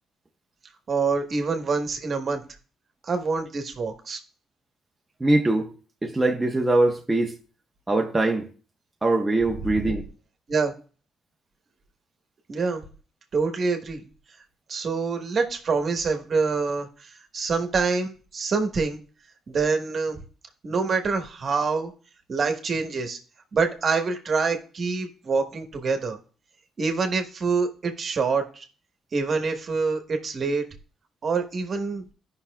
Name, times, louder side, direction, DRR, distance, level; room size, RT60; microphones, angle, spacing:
voice 1, 0.9-2.4 3.0-4.2 10.5-10.7 12.5-12.8 13.3-14.0 14.7-19.0 19.5-20.2 20.6-21.9 22.3-23.2 23.5-26.2 26.8-28.6 29.1-30.6 31.2-32.0, right 4 dB, 45° right, 1.2 m, -26 dB
voice 2, 5.2-5.7 6.0-7.4 7.9-8.5 9.0-10.1, right 2 dB, 15° right, 0.7 m, -22 dB
14.5 x 5.6 x 2.2 m
cardioid pair, 90°, 0 cm